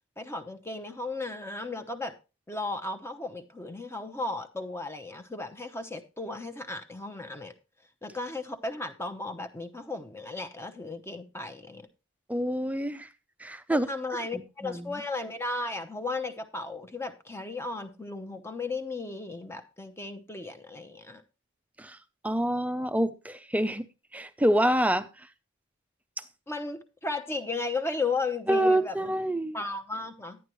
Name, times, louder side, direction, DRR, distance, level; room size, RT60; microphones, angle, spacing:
voice 1, 0.2-2.1 2.5-7.5 8.0-11.9 13.7-21.2 26.5-29.1 29.5-30.4, left 3 dB, 10° left, 0.9 m, -35 dB
voice 2, 12.3-13.1 13.4-13.9 14.3-15.0 21.8-22.0 22.2-23.9 24.1-25.1 28.5-29.6, right 1 dB, 5° right, 0.5 m, -27 dB
11.0 x 9.9 x 3.1 m
head